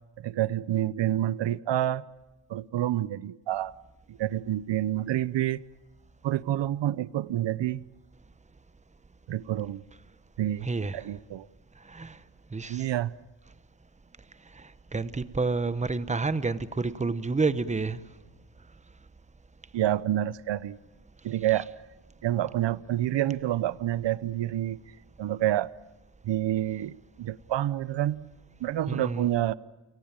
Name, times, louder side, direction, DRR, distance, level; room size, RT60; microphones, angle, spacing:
voice 1, 0.2-2.0 2.5-3.7 4.1-5.6 6.2-7.8 9.3-9.8 10.4-10.7 10.9-11.5 12.7-13.1 19.7-20.8 21.2-21.7 22.2-24.8 25.2-25.7 26.2-28.3 28.6-29.5, right 13 dB, 65° right, 0.8 m, -28 dB
voice 2, 10.6-11.1 11.8-12.2 12.5-12.9 14.5-18.0 21.5-21.6 28.9-29.3, right 3 dB, 15° right, 1.0 m, -29 dB
29.5 x 19.0 x 8.9 m
cardioid pair, 110°, 48 cm